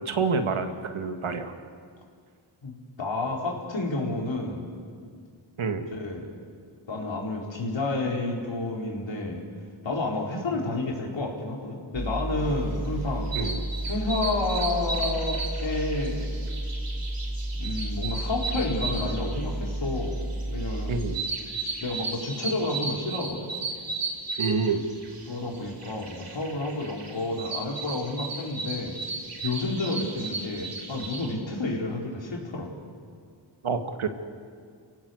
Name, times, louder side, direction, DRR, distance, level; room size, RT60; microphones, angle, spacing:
voice 1, 0.0-1.5 5.6-5.8 13.4-13.6 20.9-21.2 24.4-24.9 33.6-34.1, right 4 dB, 80° right, 6 dB, 2.0 m, -27 dB
voice 2, 2.6-4.8 5.9-6.3 6.9-9.4 9.8-13.5 13.9-16.5 17.6-20.2 20.5-20.9 21.8-23.5 25.3-29.0 29.4-32.7, left 2 dB, 65° left, 0 dB, 4.7 m, -30 dB
sound 1, 11.9-21.2, right 1 dB, 20° right, 2.7 m, -32 dB
sound 2, 12.7-31.3, right 3 dB, 60° right, 5.0 m, -36 dB
29.0 x 17.0 x 8.1 m, 2.1 s
cardioid pair, 60°, 48 cm